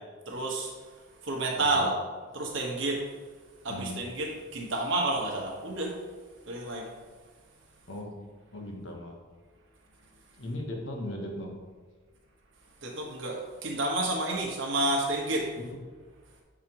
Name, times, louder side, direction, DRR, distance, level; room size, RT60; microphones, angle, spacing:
voice 1, 0.3-0.7 1.2-1.9 2.3-3.0 3.6-5.9 6.5-6.9 12.8-15.5, right 2 dB, 65° right, -1 dB, 1.2 m, -30 dB
voice 2, 1.6-1.9 3.7-4.0 7.9-8.1 8.5-9.2 10.4-11.5 15.6-15.7, left 1 dB, 65° left, 1 dB, 1.1 m, -38 dB
7.4 x 4.9 x 3.0 m, 1.4 s
head